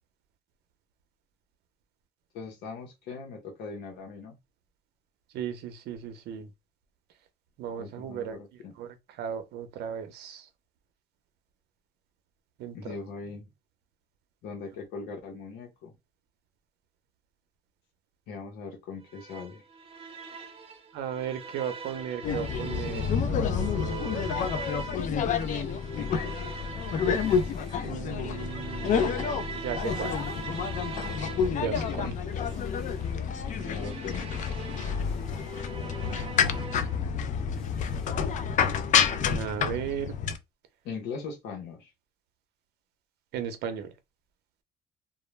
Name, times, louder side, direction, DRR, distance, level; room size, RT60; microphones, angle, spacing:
voice 1, 2.3-4.4 7.8-8.7 12.7-13.5 14.4-15.9 18.3-19.6 26.0-26.1 32.0-32.2 33.4-34.4 40.8-41.9, left 4 dB, 85° left, 0.8 m, -40 dB
voice 2, 5.3-6.5 7.6-8.4 8.8-10.5 12.6-13.0 20.9-24.3 27.8-30.2 31.6-32.1 39.3-40.2 43.3-43.9, right 8 dB, 75° right, 0.6 m, -36 dB
sound 1, 19.1-37.1, right 5 dB, 35° right, 0.8 m, -42 dB
sound 2, 22.2-40.4, left 7 dB, 50° left, 0.4 m, -29 dB
sound 3, 25.0-39.8, left 1 dB, 5° left, 0.6 m, -48 dB
2.2 x 2.1 x 3.1 m
cardioid pair, 110°, 17 cm